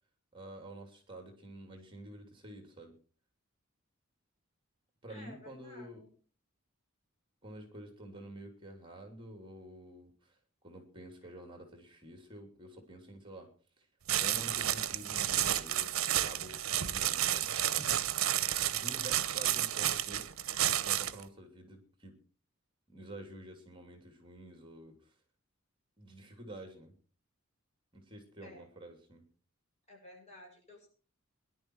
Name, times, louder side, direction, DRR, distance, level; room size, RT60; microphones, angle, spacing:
voice 1, 0.3-3.0 5.0-6.0 7.4-10.4 10.6-13.5 13.8-13.9 14.1-18.0 18.4-20.3 20.8-22.2 22.9-25.1 26.0-26.9 27.9-29.2, right 1 dB, 25° right, 5 dB, 3.0 m, -49 dB
voice 2, 5.1-6.1 28.4-28.6 29.9-30.9, left 1 dB, 30° left, 0 dB, 6.7 m, -54 dB
sound 1, 14.1-21.2, right 12 dB, 75° right, 0.8 m, -31 dB
20.0 x 11.5 x 4.7 m, 0.40 s
head